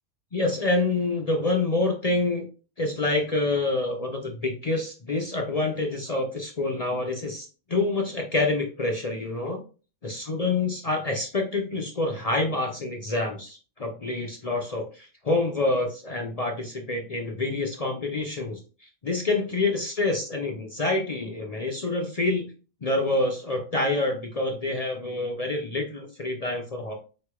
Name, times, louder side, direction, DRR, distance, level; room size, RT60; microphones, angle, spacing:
voice 1, 0.3-2.4 2.8-9.6 10.0-22.5 22.8-26.9, left 2 dB, 50° left, 2 dB, 0.4 m, -27 dB
4.8 x 4.3 x 2.3 m, 0.35 s
omnidirectional pair, 1.5 m